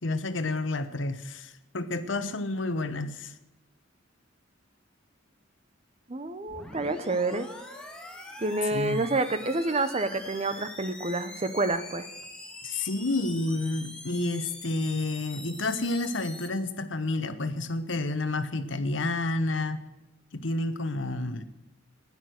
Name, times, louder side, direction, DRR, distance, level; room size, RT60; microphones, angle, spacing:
voice 1, 0.0-3.3 8.7-9.1 12.6-19.8 20.3-21.4, left 2 dB, 70° left, 11 dB, 1.1 m, -30 dB
voice 2, 6.1-7.5 8.4-12.1, right 2 dB, 35° right, 11 dB, 0.9 m, -28 dB
sound 1, 6.5-16.5, left 1 dB, 5° left, 2.1 m, -44 dB
15.5 x 11.0 x 6.5 m, 0.99 s
head